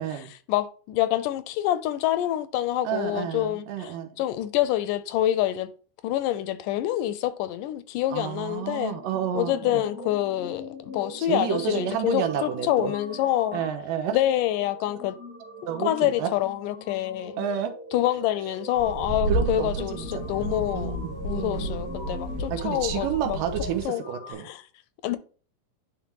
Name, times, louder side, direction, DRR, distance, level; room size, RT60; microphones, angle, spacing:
voice 1, 0.5-5.7 6.0-9.0 9.3-13.6 14.1-15.2 15.8-17.3 17.9-21.0 21.2-23.4 23.9-24.0 24.4-24.6 25.0-25.2, left 13 dB, 80° left, 2.1 m, -26 dB
voice 2, 2.8-4.2 8.1-9.8 11.2-12.9 13.5-14.2 15.7-16.3 17.4-17.7 19.3-21.7 22.5-24.5, right 9 dB, 85° right, 2.6 m, -30 dB
sound 1, 8.7-24.3, left 1 dB, 5° right, 1.0 m, -40 dB
sound 2, 18.8-23.8, right 1 dB, 60° right, 1.8 m, -32 dB
10.5 x 3.7 x 2.9 m
omnidirectional pair, 3.8 m